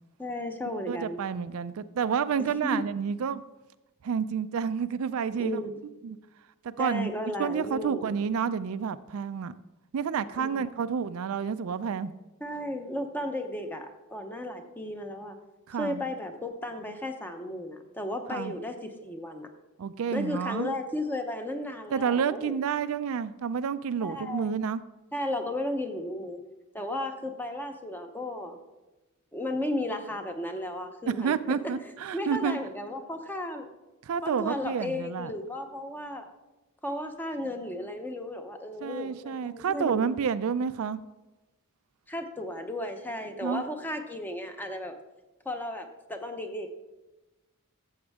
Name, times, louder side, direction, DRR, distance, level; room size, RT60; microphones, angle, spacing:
voice 1, 0.2-1.2 2.4-2.8 5.4-5.7 6.8-8.1 10.4-10.6 12.4-15.4 15.7-19.5 20.1-22.6 24.0-24.5 25.1-26.4 26.7-28.6 29.3-31.5 32.1-33.7 34.2-36.3 36.8-40.0 42.1-45.0 45.4-46.7, left 1 dB, 10° left, 5 dB, 0.8 m, -34 dB
voice 2, 0.9-3.4 4.0-5.6 6.0-6.2 6.6-7.1 7.4-9.5 9.9-12.1 15.7-16.1 18.3-18.5 19.8-20.7 21.9-24.8 31.1-32.6 34.0-35.3 38.8-41.0 43.4-43.6, right 6 dB, 70° right, 13 dB, 0.4 m, -29 dB
13.5 x 7.2 x 3.5 m, 1.1 s
head